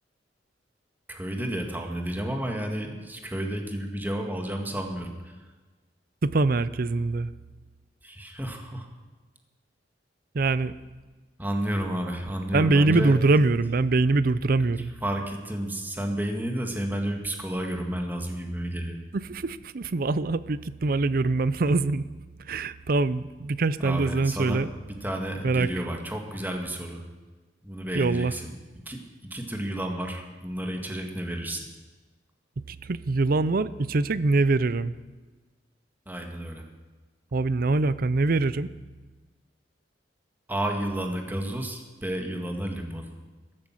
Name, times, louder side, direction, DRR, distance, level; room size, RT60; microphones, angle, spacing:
voice 1, 1.1-5.4 8.0-8.9 11.4-13.2 14.6-14.7 15.0-19.0 23.8-27.0 27.6-28.5 28.9-29.0 29.3-31.7 36.1-36.6 40.5-43.1, right 1 dB, 10° right, 3 dB, 1.8 m, -31 dB
voice 2, 6.2-7.3 10.3-10.7 12.5-14.9 19.1-22.1 22.5-24.7 25.4-25.8 27.9-28.3 32.6-34.9 37.3-38.7, right 3 dB, 55° right, 16 dB, 0.5 m, -24 dB
14.0 x 12.0 x 7.5 m, 1.3 s
head